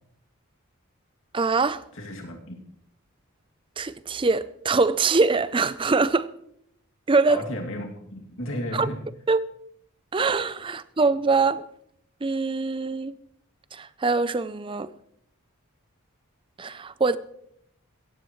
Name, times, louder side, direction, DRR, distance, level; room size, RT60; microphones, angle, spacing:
voice 1, 1.3-1.8 3.8-6.3 7.1-7.4 8.7-8.9 9.3-9.4 10.1-11.6 12.2-13.1 13.7-14.9 16.6-17.2, right 4 dB, 25° right, 0.4 m, -23 dB
voice 2, 1.9-2.6 7.3-9.0, left 1 dB, 60° left, 2.5 m, -33 dB
16.5 x 14.5 x 3.1 m
head